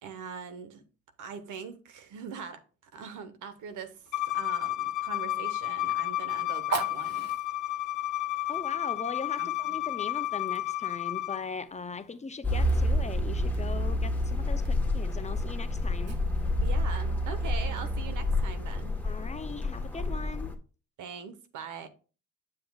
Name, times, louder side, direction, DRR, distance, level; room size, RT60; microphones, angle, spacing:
voice 1, 0.0-0.8 1.2-2.6 2.9-4.0 4.3-7.3 9.4-9.8 16.6-19.0 21.0-21.9, right 6 dB, 85° right, 1.1 m, -42 dB
Fire, 3.6-16.9, right 4 dB, 55° right, 1.3 m, -45 dB
Bowed string instrument, 4.1-11.4, left 15 dB, 80° left, 1.0 m, -31 dB
voice 2, 8.5-16.2 19.0-20.6, left 4 dB, 25° left, 0.6 m, -39 dB
sound 1, 12.4-20.5, left 1 dB, 5° left, 1.3 m, -29 dB
7.6 x 7.5 x 2.4 m
cardioid pair, 90°, 30 cm